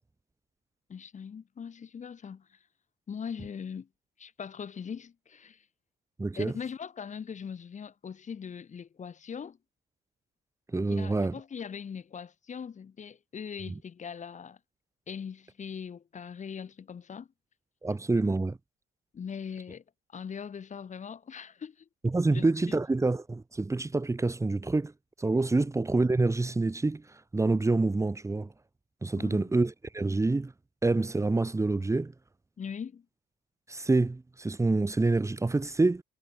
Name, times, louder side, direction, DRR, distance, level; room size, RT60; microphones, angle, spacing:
voice 1, 0.9-2.4 3.1-3.9 4.2-5.6 6.3-9.6 10.9-14.6 15.1-17.3 19.1-19.8 20.1-21.8 22.3-22.4 29.2-29.5 32.6-33.0, left 7 dB, 35° left, 6.6 m, -40 dB
voice 2, 6.2-6.5 10.7-11.3 17.8-18.6 22.0-24.9 25.2-28.5 29.0-30.5 30.8-32.1 33.7-36.0, right 3 dB, 15° right, 3.7 m, -27 dB
cardioid pair, 115°, 20 cm